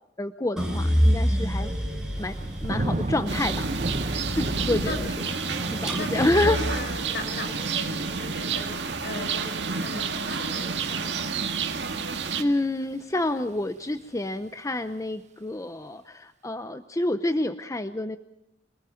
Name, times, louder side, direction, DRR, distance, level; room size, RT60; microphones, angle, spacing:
voice 1, 0.2-1.7 2.2-2.3 2.6-3.7 4.1-5.1 5.7-6.6 12.4-18.2, left 1 dB, 20° left, 10 dB, 0.7 m, -28 dB
sound 1, 0.6-10.8 11.2-12.0, equal, 5° right, 6.1 m, -29 dB
Thunder / Rain, 2.2-13.1 13.5-14.0, right 2 dB, 40° right, 1.0 m, -36 dB
sound 2, 3.3-12.4, right 5 dB, 75° right, 2.0 m, -30 dB
voice 2, 6.0-11.2, left 2 dB, 65° left, 4 dB, 6.1 m, -37 dB
26.0 x 20.0 x 5.8 m, 0.83 s
head